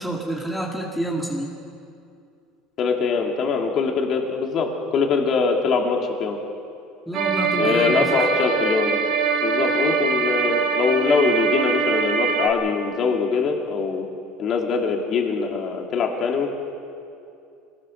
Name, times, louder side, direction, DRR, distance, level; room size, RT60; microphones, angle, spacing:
voice 1, 0.0-1.5 7.1-8.0, right 1 dB, ahead, -1 dB, 2.2 m, -28 dB
voice 2, 2.8-6.4 7.6-9.0 9.4-14.0 14.4-16.5, left 5 dB, 40° left, 1 dB, 2.9 m, -23 dB
sound 1, 7.1-12.5, right 5 dB, 45° right, 2.5 m, -23 dB
25.5 x 19.5 x 6.6 m, 2.5 s
cardioid pair, 150°, 0 cm